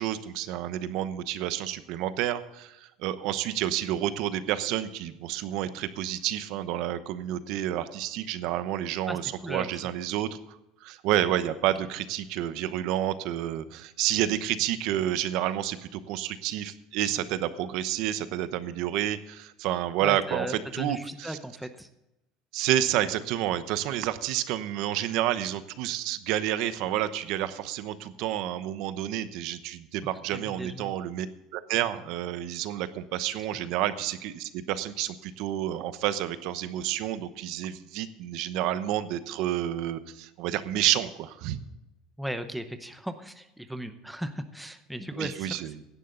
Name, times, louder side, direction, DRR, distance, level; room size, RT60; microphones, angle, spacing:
voice 1, 0.0-21.4 22.5-31.3 31.5-41.6 45.1-45.7, right 12 dB, 55° right, 12 dB, 0.9 m, -29 dB
voice 2, 9.1-9.7 20.0-21.9 30.3-31.0 42.2-45.6, equal, ahead, 8 dB, 0.8 m, -37 dB
16.5 x 11.0 x 3.9 m, 0.90 s
cardioid pair, 170°, 0 cm